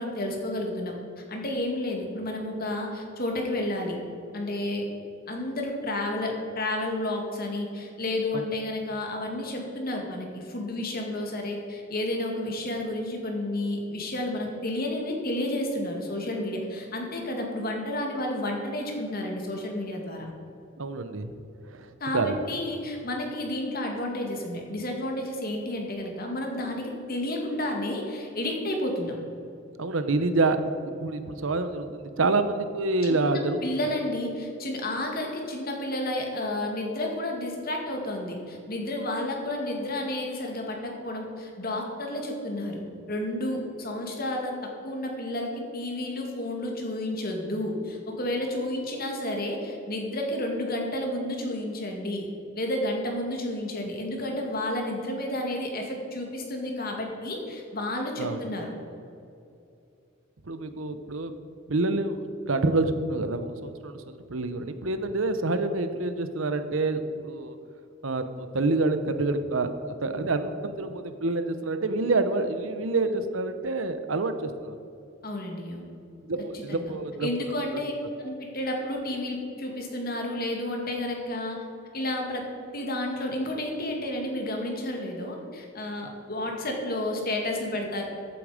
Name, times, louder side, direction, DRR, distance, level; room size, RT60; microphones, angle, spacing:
voice 1, 0.0-4.0 4.3-4.9 5.3-20.3 22.0-29.2 33.1-52.3 52.6-58.7 75.2-75.9 76.5-76.9 77.2-77.9 78.2-81.6 81.9-82.5 82.7-88.0, left 1 dB, 50° left, 1 dB, 2.3 m, -31 dB
voice 2, 20.8-21.3 21.6-22.4 29.8-30.6 30.9-33.6 58.2-58.4 60.5-61.3 61.7-67.6 68.0-69.7 70.0-74.8 76.2-77.3 77.7-77.8, right 3 dB, 85° right, 9 dB, 0.9 m, -27 dB
15.0 x 8.6 x 5.1 m, 2.6 s
head